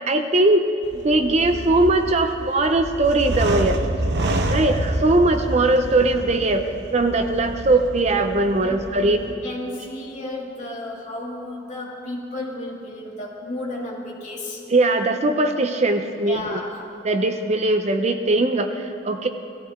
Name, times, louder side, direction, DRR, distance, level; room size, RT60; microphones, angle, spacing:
voice 1, 0.1-0.7 1.0-3.8 4.5-9.2 14.7-16.6 17.0-19.3, right 2 dB, 35° right, 6 dB, 0.6 m, -20 dB
sound 1, 0.8-9.3, right 1 dB, 60° right, 0.9 m, -28 dB
voice 2, 4.3-4.7 8.4-14.6 16.2-16.8, left 2 dB, 40° left, -2 dB, 2.2 m, -33 dB
18.0 x 14.5 x 3.6 m, 2.8 s
head